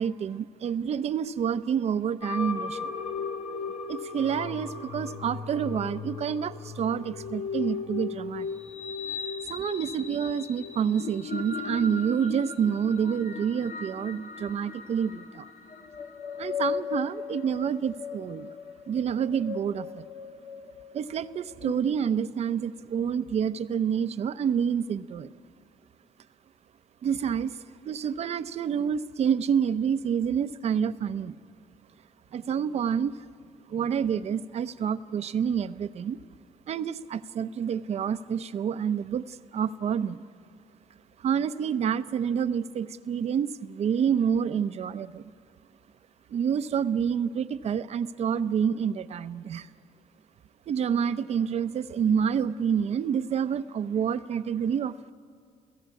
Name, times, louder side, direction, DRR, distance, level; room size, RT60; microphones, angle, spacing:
voice 1, 0.0-2.9 3.9-8.5 9.4-15.4 16.4-18.5 18.9-20.1 20.9-25.3 27.0-27.6 27.8-31.3 32.3-33.2 33.7-36.2 36.7-40.2 41.2-45.3 46.3-49.7 50.7-55.1, right 7 dB, 55° right, 13 dB, 0.7 m, -28 dB
sound 1, 2.2-21.7, left 5 dB, 80° left, 1.8 m, -37 dB
29.5 x 16.0 x 8.4 m, 2.1 s
cardioid pair, 90°, 13 cm